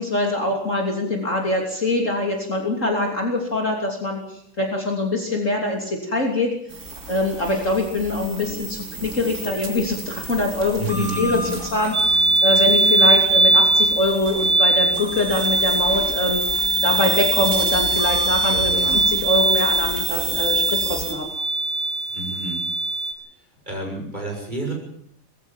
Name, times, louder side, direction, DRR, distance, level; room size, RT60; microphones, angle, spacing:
voice 1, 0.0-6.5 7.1-16.4 16.8-21.3, left 1 dB, 40° left, 1 dB, 3.4 m, -24 dB
sound 1, 6.7-21.1, right 3 dB, 50° right, 3.5 m, -31 dB
voice 2, 10.8-11.5 18.5-19.0 22.1-22.6 23.7-24.7, right 2 dB, 20° right, 0 dB, 6.9 m, -29 dB
sound 2, 11.9-23.1, right 2 dB, 5° left, 3.2 m, -20 dB
20.5 x 15.0 x 9.0 m, 0.69 s
omnidirectional pair, 2.1 m